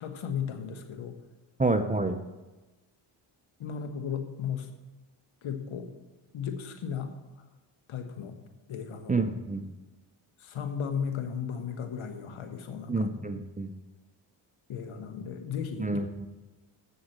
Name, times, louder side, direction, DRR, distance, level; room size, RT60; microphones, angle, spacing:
voice 1, 0.0-1.1 3.6-4.7 5.4-5.9 6.3-7.1 7.9-8.3 8.7-9.2 10.4-13.1 14.7-15.9, left 7 dB, 70° left, 6 dB, 1.4 m, -35 dB
voice 2, 1.6-2.2 9.1-9.7 12.9-13.7 15.8-16.3, right 3 dB, 15° right, 8 dB, 0.7 m, -28 dB
7.9 x 6.4 x 7.3 m, 1.1 s
supercardioid pair, 60°, 49 cm